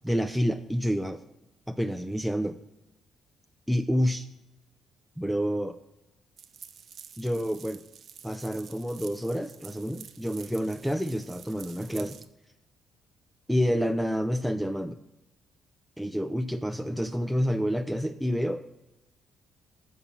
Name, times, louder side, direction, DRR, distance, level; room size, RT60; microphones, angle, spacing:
voice 1, 0.0-1.2 1.7-2.6 3.7-4.3 5.2-5.8 7.2-7.8 8.2-12.2 13.5-15.0 16.0-18.8, equal, ahead, 9 dB, 0.3 m, -28 dB
sound 1, 6.4-12.3, right 8 dB, 60° right, 0.5 m, -49 dB
7.0 x 5.3 x 5.8 m, 0.96 s
cardioid pair, 90°, 0 cm